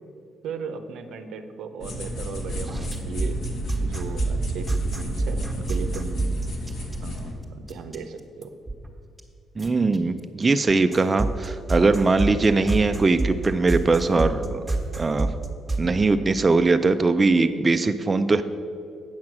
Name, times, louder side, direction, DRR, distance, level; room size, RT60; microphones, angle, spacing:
voice 1, 0.4-3.4 3.8-6.3 7.0-8.5, right 5 dB, 85° right, 7 dB, 0.7 m, -36 dB
sound 1, 1.8-7.3, equal, 75° left, 1.4 m, -32 dB
sound 2, 2.7-7.2 7.7-8.0 8.4-8.9 9.2-9.3 9.6-10.0 10.7-15.9, right 2 dB, 10° right, 1.2 m, -27 dB
voice 2, 9.6-14.6 15.0-15.3 15.8-18.4, right 3 dB, 25° right, 8 dB, 0.4 m, -21 dB
8.7 x 6.0 x 6.0 m, 2.6 s
cardioid pair, 90°, 0 cm